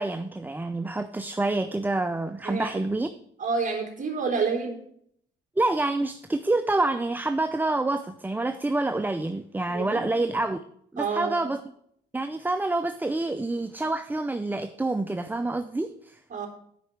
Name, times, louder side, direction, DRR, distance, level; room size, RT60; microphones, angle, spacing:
voice 1, 0.0-3.1 5.6-10.6 10.9-11.6 12.1-16.2, right 2 dB, 10° right, 10 dB, 0.5 m, -27 dB
voice 2, 3.4-4.8 9.7-10.0 11.0-11.5 16.3-16.5, right 5 dB, 40° right, 1 dB, 3.5 m, -28 dB
9.3 x 5.5 x 7.9 m, 0.69 s
cardioid pair, 90°, 20 cm